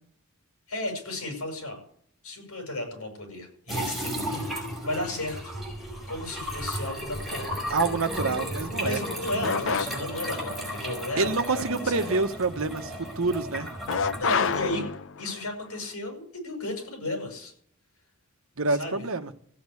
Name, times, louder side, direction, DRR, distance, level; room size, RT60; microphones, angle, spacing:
voice 1, 0.7-1.8 2.2-4.4 4.8-5.5 6.1-7.5 8.8-12.1 14.2-14.8 15.2-17.5 18.7-19.1, left 1 dB, 80° left, 7.4 m, -34 dB
sound 1, 3.7-14.6, equal, ahead, 5.2 m, -34 dB
voice 2, 7.7-9.0 11.2-13.7 18.6-19.3, right 3 dB, 70° right, 1.2 m, -27 dB
sound 2, 9.4-10.3 13.9-15.4, left 6 dB, 60° left, 0.6 m, -28 dB
16.0 x 8.7 x 8.4 m
head